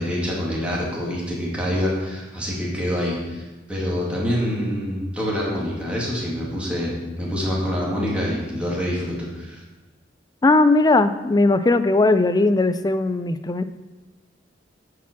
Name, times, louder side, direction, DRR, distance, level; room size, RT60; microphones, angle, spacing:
voice 1, 0.0-9.6, equal, 5° right, -5 dB, 2.1 m, -26 dB
voice 2, 10.4-13.6, left 2 dB, 20° left, 11 dB, 0.4 m, -18 dB
9.3 x 4.8 x 6.0 m, 1.2 s
head